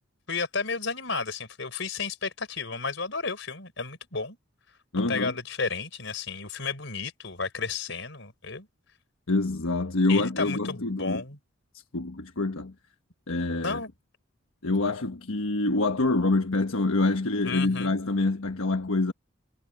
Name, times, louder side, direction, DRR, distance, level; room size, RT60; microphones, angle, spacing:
voice 1, 0.3-4.4 5.1-8.7 10.1-11.4 13.6-13.9 17.5-17.9, left 4 dB, 65° left, 5.2 m, -32 dB
voice 2, 4.9-5.3 9.3-11.2 11.9-12.7 13.3-13.8 14.6-19.1, left 2 dB, 85° left, 1.3 m, -26 dB
head